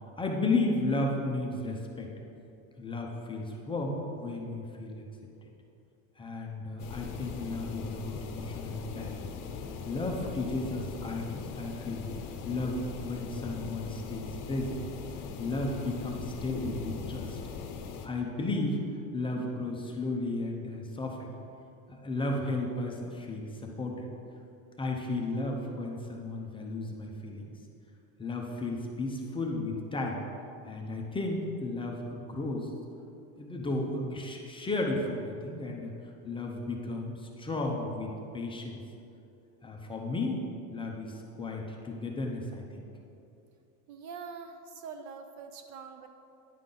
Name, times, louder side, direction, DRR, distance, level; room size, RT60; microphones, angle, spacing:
voice 1, 0.2-2.1 2.8-5.0 6.2-9.2 9.8-12.1 12.4-14.8 15.4-17.4 18.0-18.8 19.1-21.3 21.9-24.1 24.8-27.4 28.2-30.2 30.7-32.7 33.4-35.9 36.2-38.8 39.6-40.4 40.7-42.8, left 2 dB, 10° left, 0 dB, 0.5 m, -34 dB
sound 1, 6.8-18.1, left 6 dB, 50° left, 0.8 m, -40 dB
voice 2, 43.9-46.1, right 5 dB, 45° right, 7 dB, 0.4 m, -44 dB
10.0 x 5.5 x 3.8 m, 2.7 s
cardioid pair, 145°, 42 cm